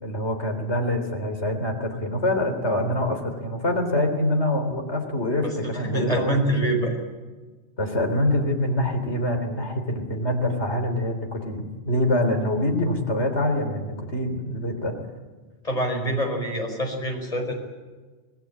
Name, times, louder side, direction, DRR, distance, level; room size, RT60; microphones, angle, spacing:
voice 1, 0.0-6.8 7.8-14.9, left 1 dB, 80° left, 5 dB, 4.0 m, -25 dB
voice 2, 5.4-7.0 15.6-17.5, right 1 dB, 35° left, 3 dB, 5.4 m, -25 dB
25.5 x 19.0 x 8.8 m, 1.3 s
omnidirectional pair, 1.1 m